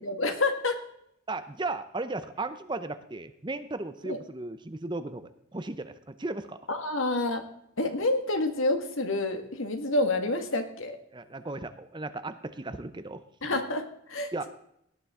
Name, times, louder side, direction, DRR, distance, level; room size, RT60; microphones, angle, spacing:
voice 1, 0.0-0.8 4.0-4.2 6.7-7.4 7.8-11.0 13.4-13.8 14.1-14.5, left 2 dB, 70° left, 6 dB, 1.7 m, -28 dB
voice 2, 1.3-6.6 11.1-13.6 14.3-14.5, right 2 dB, 20° right, 11 dB, 0.6 m, -36 dB
17.5 x 9.9 x 3.7 m, 0.74 s
head